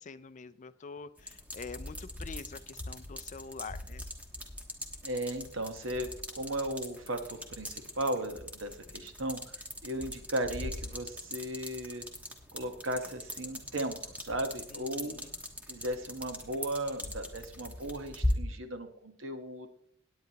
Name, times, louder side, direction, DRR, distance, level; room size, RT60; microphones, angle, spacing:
voice 1, 0.0-4.0 15.0-15.3, left 5 dB, 40° left, 14 dB, 0.4 m, -45 dB
sound 1, 1.2-18.4, left 1 dB, 5° right, 1.2 m, -40 dB
voice 2, 5.0-12.0 12.5-15.2 15.7-19.7, right 1 dB, 80° right, 7 dB, 1.2 m, -36 dB
17.0 x 9.4 x 2.9 m, 0.67 s
head